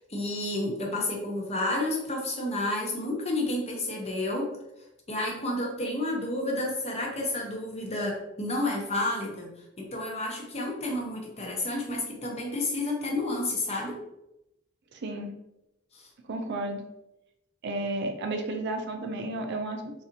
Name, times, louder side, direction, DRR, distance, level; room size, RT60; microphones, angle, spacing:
voice 1, 0.0-4.5 5.1-9.5 9.8-14.0 15.9-16.1, left 2 dB, 30° left, 0 dB, 0.8 m, -30 dB
voice 2, 14.9-15.3 16.3-16.8 17.6-19.9, right 2 dB, 55° right, 5 dB, 0.4 m, -32 dB
4.0 x 2.6 x 2.8 m, 0.87 s
head